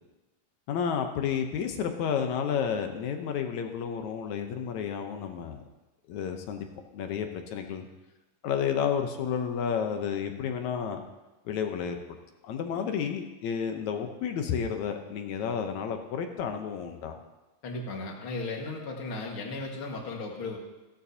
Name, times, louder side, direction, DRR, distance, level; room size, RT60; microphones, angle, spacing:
voice 1, 0.7-5.6 6.1-6.7 6.9-7.9 8.4-11.0 11.5-12.0 12.4-17.2, left 7 dB, 70° left, 5 dB, 2.0 m, -31 dB
voice 2, 17.6-20.6, left 3 dB, 45° left, 0 dB, 2.1 m, -36 dB
16.5 x 13.0 x 2.8 m, 1.1 s
omnidirectional pair, 3.8 m